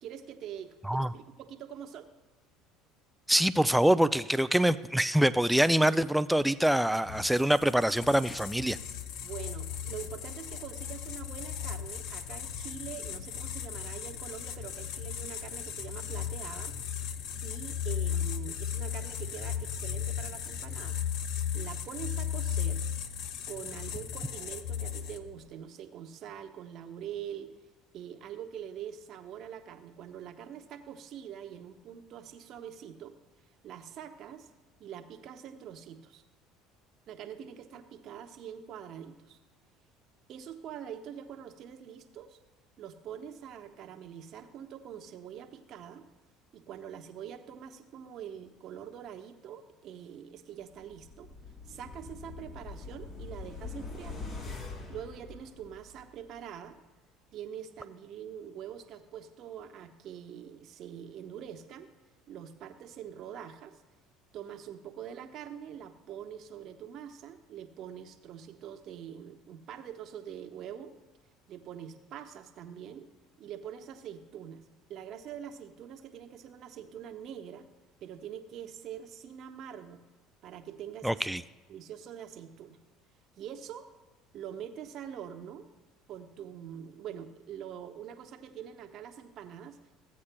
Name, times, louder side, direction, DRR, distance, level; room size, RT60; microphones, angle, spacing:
voice 1, 0.0-2.1 9.2-16.8 17.4-21.0 21.5-22.8 23.5-27.5 27.9-33.2 33.6-34.5 34.8-36.2 37.1-39.4 40.3-42.4 42.8-46.1 46.5-51.3 51.7-54.2 54.9-56.8 57.3-61.9 62.3-63.8 64.3-70.9 71.5-73.1 73.4-74.6 74.9-77.7 78.0-80.0 80.4-81.3 81.7-82.8 83.4-83.9 84.3-85.6 86.1-89.8, right 9 dB, 55° right, 5 dB, 0.9 m, -44 dB
voice 2, 3.3-8.8 81.0-81.4, right 1 dB, 5° right, 14 dB, 0.3 m, -25 dB
sound 1, 7.0-25.4, left 8 dB, 65° left, 0.6 m, -36 dB
sound 2, 50.8-56.0 56.4-56.5, left 3 dB, 45° left, 2.6 m, -43 dB
15.5 x 8.5 x 2.2 m, 1.2 s
supercardioid pair, 85°, 0 cm